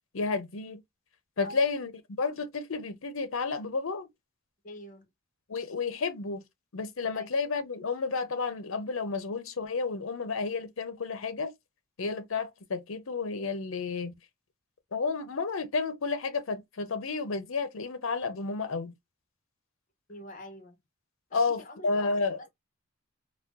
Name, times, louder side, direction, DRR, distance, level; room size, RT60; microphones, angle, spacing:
voice 1, 0.1-0.8 1.4-1.9 2.2-4.1 5.5-6.4 6.7-11.5 12.0-14.1 14.9-18.9 21.3-22.4, left 4 dB, 70° left, 0.7 m, -31 dB
voice 2, 4.6-5.1 7.1-7.3 20.1-20.8 21.3-22.5, left 1 dB, 40° left, 1.0 m, -46 dB
4.2 x 2.2 x 2.3 m
head